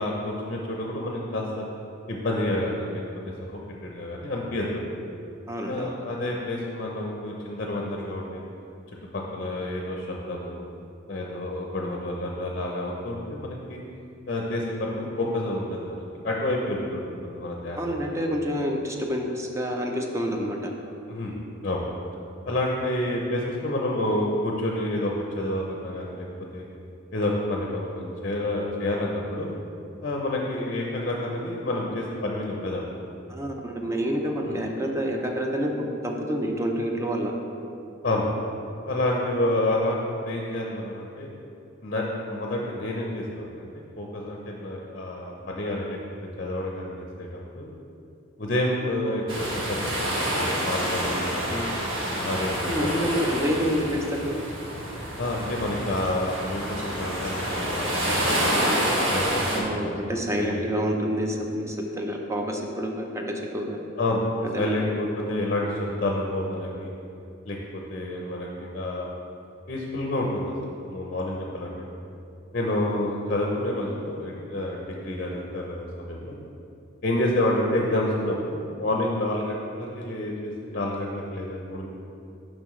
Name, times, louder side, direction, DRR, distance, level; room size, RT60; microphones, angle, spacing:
voice 1, 0.0-1.6 2.1-3.0 3.8-4.9 5.7-8.4 9.1-10.6 11.1-13.8 14.3-18.0 21.1-21.3 21.6-21.8 22.5-26.3 26.5-26.6 27.1-29.5 30.0-32.8 34.4-34.6 38.0-38.3 38.9-41.3 41.8-43.7 44.0-46.0 46.4-47.3 47.6-47.7 48.4-49.2 49.5-51.7 52.2-53.0 55.2-58.5 59.1-60.0 60.4-60.7 64.0-64.3 64.6-66.9 67.5-69.1 69.7-71.7 72.5-76.4 77.0-81.9, left 1 dB, 45° left, -1 dB, 0.6 m, -29 dB
voice 2, 5.5-5.9 17.8-20.7 33.3-37.3 52.7-54.3 59.5-63.8 64.4-64.9 72.9-73.0, equal, 15° right, 2 dB, 0.5 m, -28 dB
sound 1, 49.3-59.6, equal, 75° right, 1.1 m, -28 dB
7.3 x 5.1 x 3.1 m, 2.6 s
head